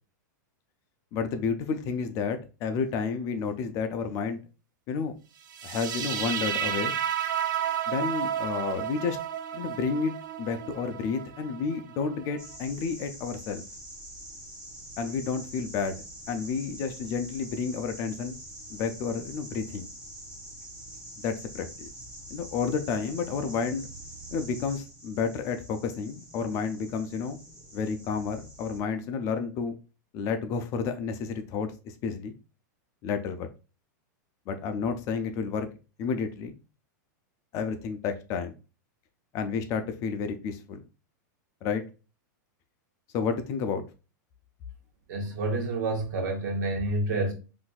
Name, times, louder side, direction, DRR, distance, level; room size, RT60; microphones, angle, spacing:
voice 1, 1.1-4.4 4.9-5.1 5.6-6.9 7.9-9.2 9.5-13.6 15.0-16.0 16.3-18.4 18.7-19.9 21.2-21.9 22.3-23.9 24.3-27.4 27.7-29.7 30.1-32.4 33.0-33.5 34.5-35.7 36.0-36.6 37.5-38.5 39.3-40.8 41.6-41.8 43.1-43.8, left 5 dB, 30° left, 0.4 m, -31 dB
sound 1, 5.5-12.6, right 9 dB, 85° right, 0.4 m, -32 dB
sound 2, 12.4-28.8, right 1 dB, 10° right, 1.0 m, -45 dB
voice 2, 45.1-47.3, right 2 dB, 65° right, 1.1 m, -28 dB
3.9 x 2.6 x 2.3 m
supercardioid pair, 155°, 10 cm